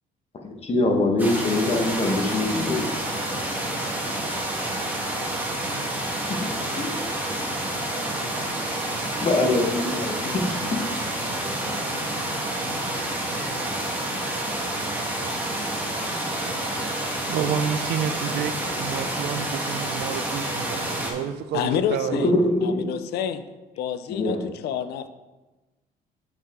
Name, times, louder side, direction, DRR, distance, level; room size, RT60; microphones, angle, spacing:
voice 1, 0.6-2.8 6.8-6.9 8.4-8.5 9.1-10.8 22.2-22.9 24.1-24.5, left 2 dB, 35° left, 3 dB, 1.2 m, -23 dB
sound 1, 1.2-21.1, right 1 dB, 10° right, 1.5 m, -29 dB
voice 2, 17.3-22.4, right 8 dB, 70° right, 11 dB, 0.6 m, -29 dB
voice 3, 21.5-22.3 22.6-23.4 23.8-25.1, left 9 dB, 75° left, 11 dB, 0.5 m, -28 dB
7.6 x 5.6 x 3.6 m, 1.2 s
cardioid pair, 110°, 17 cm